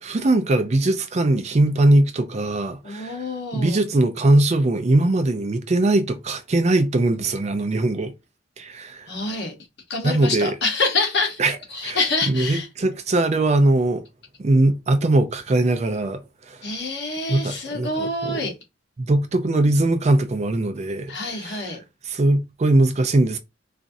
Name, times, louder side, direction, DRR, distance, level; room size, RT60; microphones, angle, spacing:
voice 1, 0.0-3.2 3.5-8.1 8.6-9.1 10.0-10.6 11.4-11.6 11.8-12.0 12.3-14.0 14.4-16.6 17.3-18.4 19.0-21.7 22.0-23.4, right 2 dB, 35° right, 0.4 m, -20 dB
voice 2, 2.8-3.8 9.1-9.5 9.9-11.4 11.7-12.7 16.6-18.5 21.1-21.8, left 3 dB, 60° left, 1.0 m, -26 dB
4.0 x 2.4 x 2.6 m
head